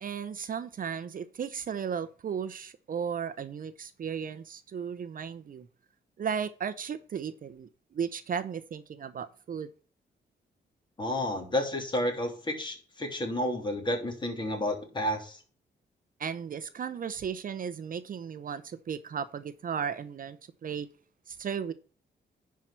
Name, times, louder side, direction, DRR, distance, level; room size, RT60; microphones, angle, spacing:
voice 1, 0.0-5.7 6.2-9.7 16.2-20.9 21.3-21.7, right 7 dB, 50° right, 0.7 m, -35 dB
voice 2, 11.0-15.4, left 1 dB, 25° left, 3.1 m, -31 dB
10.5 x 4.7 x 5.7 m
wide cardioid pair, 135°, 18 cm